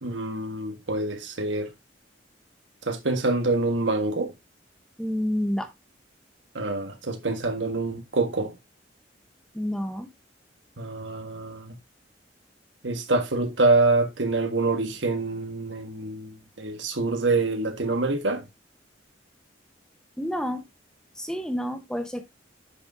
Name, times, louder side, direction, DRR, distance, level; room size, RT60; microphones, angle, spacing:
voice 1, 0.0-1.7 2.8-4.3 6.5-8.5 10.8-11.8 12.8-18.4, right 3 dB, 85° right, 1.6 m, -26 dB
voice 2, 5.0-5.7 9.5-10.1 20.2-20.6 21.2-22.2, equal, 5° left, 1.0 m, -29 dB
9.9 x 6.0 x 2.7 m
head